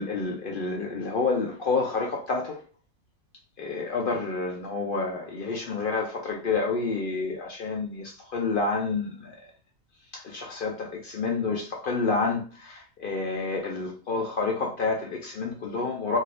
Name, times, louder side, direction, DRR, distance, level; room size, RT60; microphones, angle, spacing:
voice 1, 0.0-2.6 3.6-9.4 10.1-16.2, left 4 dB, 65° left, 0.5 m, -29 dB
3.2 x 2.6 x 2.5 m
omnidirectional pair, 1.5 m